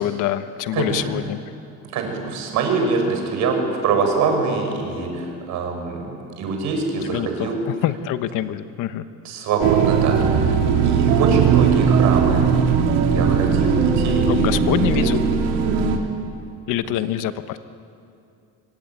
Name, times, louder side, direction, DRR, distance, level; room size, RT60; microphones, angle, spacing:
voice 1, 0.0-1.4 7.0-9.0 14.3-15.3 16.7-17.6, left 12 dB, 65° left, 11 dB, 1.2 m, -25 dB
voice 2, 0.7-1.1 1.9-7.6 9.2-10.5 10.8-12.4 13.1-15.1 16.8-17.0, right 4 dB, 55° right, 3 dB, 6.2 m, -24 dB
sound 1, 9.6-16.0, right 6 dB, 80° right, 3.1 m, -18 dB
25.0 x 25.0 x 9.4 m, 2.5 s
cardioid pair, 160°, 34 cm